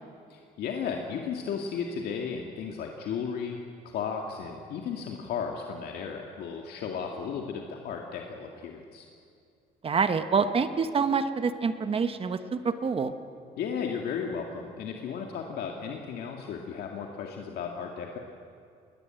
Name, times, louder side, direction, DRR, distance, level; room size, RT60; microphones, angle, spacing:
voice 1, 0.3-9.1 13.6-18.2, left 6 dB, 70° left, 1 dB, 2.0 m, -35 dB
voice 2, 9.8-12.4 12.6-13.1, right 5 dB, 35° right, 9 dB, 1.3 m, -26 dB
20.5 x 20.0 x 9.0 m, 2.4 s
cardioid pair, 110°, 17 cm